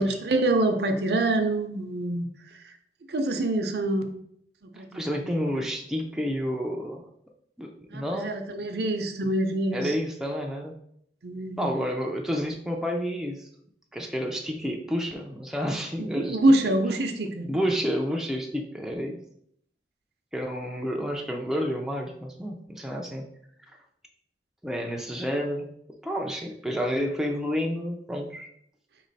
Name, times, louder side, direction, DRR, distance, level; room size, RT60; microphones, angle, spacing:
voice 1, 0.0-2.8 3.1-4.1 4.6-5.2 7.9-10.0 11.2-11.7 16.0-17.5, right 1 dB, 65° right, 6 dB, 0.6 m, -26 dB
voice 2, 4.9-7.0 7.6-8.3 9.7-10.7 11.6-13.5 13.9-16.4 16.7-16.8 17.5-19.2 20.3-23.3 24.6-25.7 26.0-28.5, equal, ahead, 0 dB, 0.4 m, -30 dB
4.3 x 3.1 x 4.0 m, 0.71 s
head